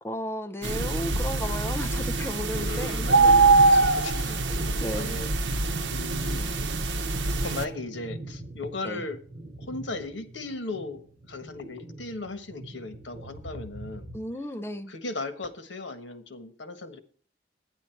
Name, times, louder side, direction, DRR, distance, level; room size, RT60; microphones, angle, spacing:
voice 1, 0.0-3.3 4.8-5.2 8.8-9.1 14.1-14.9, equal, 15° left, 0.6 m, -34 dB
voice 2, 0.6-1.3 2.5-5.6 5.9-6.5 7.4-9.2 9.6-14.1 14.9-17.0, left 2 dB, 85° left, 1.4 m, -37 dB
sound 1, 0.6-7.6, right 3 dB, 85° right, 0.9 m, -23 dB
sound 2, 6.7-14.2, right 1 dB, 45° right, 4.6 m, -44 dB
11.5 x 9.8 x 4.5 m
head